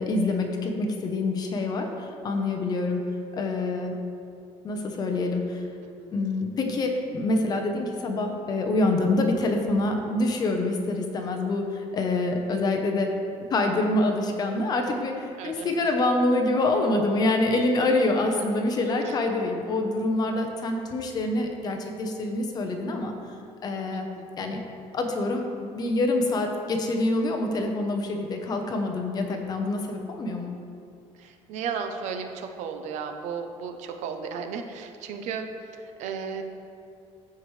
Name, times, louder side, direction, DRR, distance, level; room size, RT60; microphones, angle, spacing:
voice 1, 0.0-3.0 3.3-3.9 4.6-5.6 6.1-13.1 13.5-23.1 23.6-24.1 24.4-24.6 24.9-30.5, left 2 dB, 35° left, 3 dB, 0.8 m, -26 dB
voice 2, 15.4-15.7 19.0-19.1 23.9-24.2 31.2-36.4, right 6 dB, 80° right, 6 dB, 0.7 m, -34 dB
14.0 x 4.7 x 3.2 m, 2.5 s
cardioid pair, 170°, 12 cm